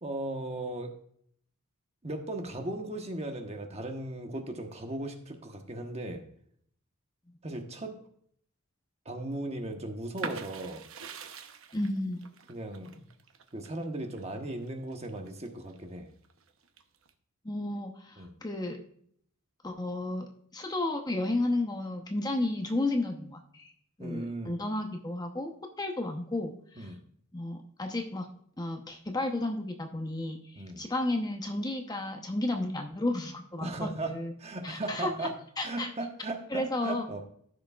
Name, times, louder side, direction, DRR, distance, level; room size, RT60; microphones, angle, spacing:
voice 1, 0.0-0.9 2.0-6.2 7.4-8.0 9.0-10.8 12.5-13.0 13.5-16.1 18.2-18.3 24.0-24.5 26.8-27.0 30.5-30.9 33.6-34.1 34.4-35.3 35.6-37.2, right 2 dB, 30° right, 4 dB, 1.1 m, -37 dB
sound 1, 10.2-15.8 16.2-17.1, right 5 dB, 65° right, 0.9 m, -44 dB
voice 2, 11.7-12.3 17.4-18.8 19.6-20.2 20.5-23.7 24.0-25.5 25.8-26.9 27.3-28.3 28.6-34.3 34.6-35.1 35.6-35.9 36.5-37.2, left 2 dB, 20° left, 3 dB, 0.8 m, -32 dB
15.0 x 6.3 x 2.4 m, 0.64 s
head